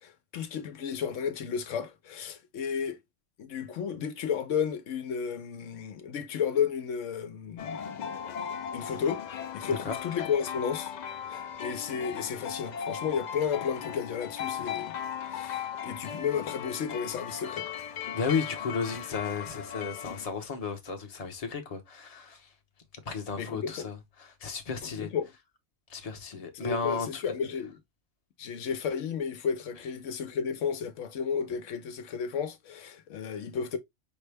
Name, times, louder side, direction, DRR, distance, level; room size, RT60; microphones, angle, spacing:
voice 1, 0.0-3.0 3.4-8.2 8.7-10.9 11.3-15.0 15.3-17.7 23.3-23.9 24.8-25.3 26.3-27.8 28.4-33.8, left 7 dB, 85° left, 1.0 m, -33 dB
sound 1, 7.6-20.3, left 8 dB, 65° left, 0.4 m, -37 dB
voice 2, 18.1-22.5 23.0-25.1 25.9-27.2, left 5 dB, 35° left, 0.9 m, -34 dB
5.2 x 2.2 x 3.3 m
omnidirectional pair, 1.3 m